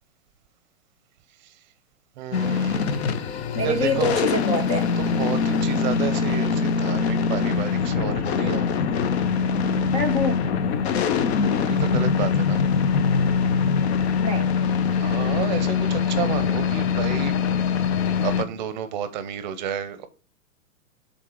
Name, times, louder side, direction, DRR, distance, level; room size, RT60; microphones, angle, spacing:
voice 1, 2.2-3.1 3.6-4.1 5.0-8.7 11.6-12.6 15.0-17.3 17.6-17.8 18.2-20.1, right 8 dB, 30° right, 0.7 m, -31 dB
sound 1, 2.3-18.4, left 6 dB, 45° left, 0.8 m, -23 dB
voice 2, 3.5-4.9 9.9-10.4 14.2-14.5, left 1 dB, 20° left, 0.3 m, -25 dB
7.6 x 3.8 x 4.7 m
hypercardioid pair, 155°, 44 cm